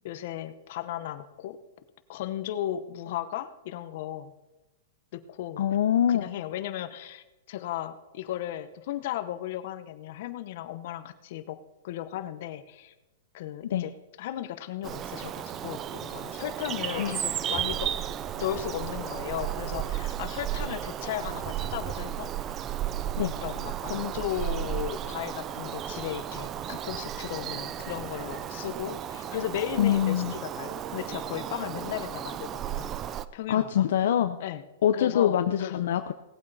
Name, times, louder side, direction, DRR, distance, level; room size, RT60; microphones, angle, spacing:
voice 1, 0.0-1.6 2.1-4.3 5.1-5.6 6.1-12.9 13.3-13.9 14.2-17.9 18.4-22.6 23.4-32.9 33.3-33.9 34.4-34.6 34.9-35.8, left 12 dB, 55° left, 11 dB, 0.9 m, -36 dB
voice 2, 5.6-6.3 13.7-13.9 16.9-17.2 23.2-23.3 29.8-30.3 33.5-34.4 34.8-36.1, left 10 dB, 70° left, 8 dB, 0.6 m, -24 dB
Bird vocalization bird call bird song, 14.8-33.3, right 10 dB, 25° right, 0.4 m, -34 dB
18.0 x 8.6 x 4.1 m, 1.0 s
hypercardioid pair, 155°, 0 cm